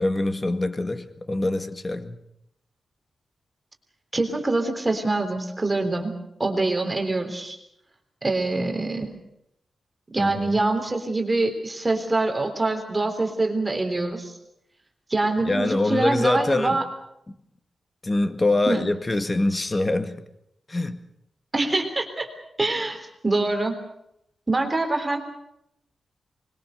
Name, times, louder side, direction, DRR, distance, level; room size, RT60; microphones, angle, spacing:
voice 1, 0.0-2.2 10.2-10.5 15.5-16.8 18.0-20.2 20.7-21.0, left 2 dB, 25° left, 1.9 m, -24 dB
voice 2, 4.1-6.1 6.4-7.6 8.2-9.1 10.1-14.3 15.1-16.8 18.7-18.8 21.5-22.3 22.6-23.8 24.5-25.2, right 2 dB, 25° right, 3.6 m, -24 dB
24.5 x 22.0 x 6.6 m
wide cardioid pair, 100°, 0 cm